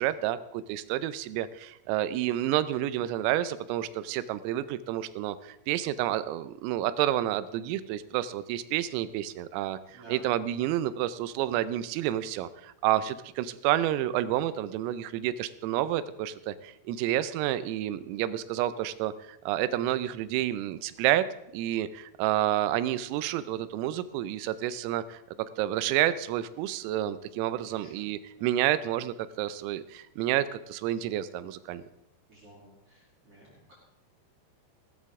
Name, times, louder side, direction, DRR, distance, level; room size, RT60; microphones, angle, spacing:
voice 1, 0.0-21.3 21.5-25.2 25.6-31.8, right 13 dB, 90° right, 14 dB, 3.3 m, -29 dB
voice 2, 27.6-28.1 28.3-28.5 32.3-33.7, right 1 dB, 35° right, -6 dB, 3.6 m, -52 dB
15.5 x 13.5 x 3.6 m, 0.81 s
omnidirectional pair, 5.8 m